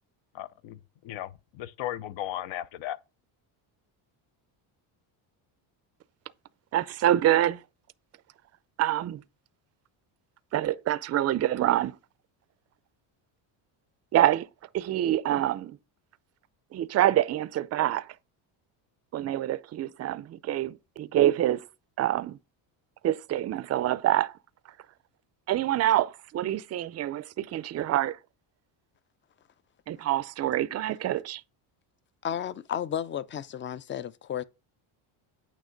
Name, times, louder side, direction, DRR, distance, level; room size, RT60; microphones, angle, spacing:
voice 1, 0.3-3.0, left 12 dB, 65° left, 0.8 m, -36 dB
voice 2, 6.7-7.6 8.8-9.2 10.5-12.0 14.1-14.5 14.7-15.8 16.7-18.1 19.1-21.6 22.0-22.4 23.0-24.3 25.5-28.2 29.9-31.4, right 12 dB, 35° right, 0.4 m, -26 dB
voice 3, 32.2-34.4, left 9 dB, 25° left, 0.4 m, -33 dB
9.0 x 3.0 x 5.0 m
cardioid pair, 105°, 49 cm